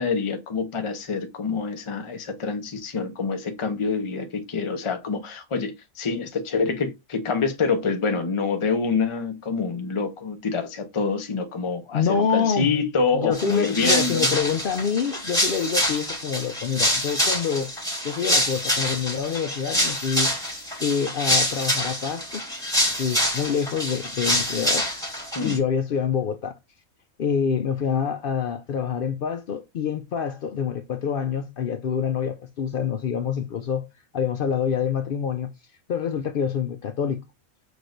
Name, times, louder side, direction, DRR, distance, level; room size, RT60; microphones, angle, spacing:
voice 1, 0.0-14.4 25.3-25.6, left 4 dB, 30° left, 0.6 m, -26 dB
voice 2, 11.9-12.7 13.1-17.7 18.0-20.3 20.8-22.4 23.0-24.9 25.4-26.5 27.2-33.9 34.1-35.5 35.9-37.2, left 7 dB, 75° left, 0.5 m, -26 dB
sound 1, 13.3-25.6, equal, 5° left, 1.3 m, -26 dB
6.4 x 2.5 x 3.1 m
omnidirectional pair, 1.5 m